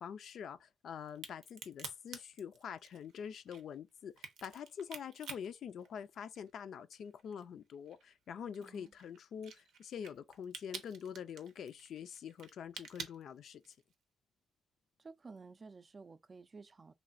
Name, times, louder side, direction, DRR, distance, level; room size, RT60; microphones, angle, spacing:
voice 1, 0.0-13.7, left 8 dB, 70° left, 0.4 m, -45 dB
Crack, 1.1-6.6 6.9-13.9, right 6 dB, 85° right, 0.6 m, -50 dB
voice 2, 8.6-8.9 15.0-16.9, right 4 dB, 35° right, 0.3 m, -53 dB
3.1 x 2.3 x 2.5 m
cardioid pair, 80°, 0 cm